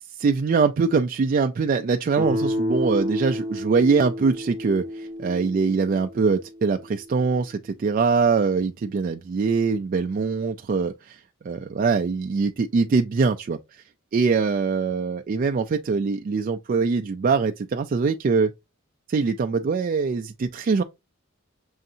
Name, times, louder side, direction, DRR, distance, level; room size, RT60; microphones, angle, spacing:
voice 1, 0.2-11.2 11.4-13.8 14.1-18.5 19.1-20.8, right 4 dB, 40° right, 0.3 m, -23 dB
Guitar, 2.2-7.0, equal, 15° right, 0.8 m, -30 dB
6.3 x 2.7 x 2.5 m
head